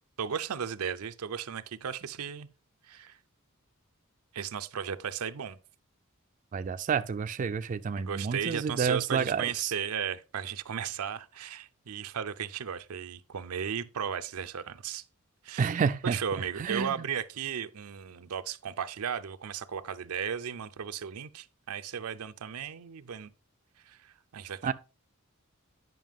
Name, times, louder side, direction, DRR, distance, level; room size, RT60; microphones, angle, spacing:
voice 1, 0.2-2.5 2.8-3.2 4.3-5.6 8.0-15.0 15.4-23.3 23.9-24.7, right 8 dB, 90° right, 0.5 m, -35 dB
voice 2, 6.5-9.7 15.6-16.2 16.6-16.9 24.6-24.7, right 6 dB, 35° right, 0.3 m, -29 dB
9.2 x 5.5 x 3.5 m
head